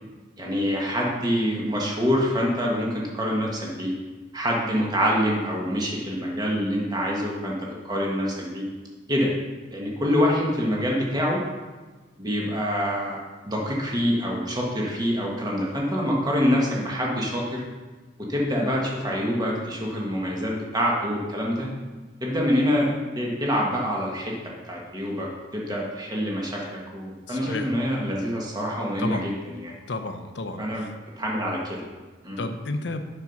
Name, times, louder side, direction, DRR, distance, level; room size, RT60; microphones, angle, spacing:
voice 1, 0.4-3.9 4.3-8.6 9.1-9.3 9.7-11.4 12.2-13.2 13.4-17.6 18.3-21.7 22.2-22.9 23.2-24.3 24.7-29.7 30.6-30.8 31.2-31.8 32.2-32.4, equal, 20° right, -3 dB, 1.4 m, -26 dB
voice 2, 27.3-27.7 29.0-29.3 29.9-30.9 32.4-33.0, left 2 dB, 60° left, 8 dB, 0.6 m, -31 dB
7.1 x 5.4 x 5.9 m, 1.3 s
head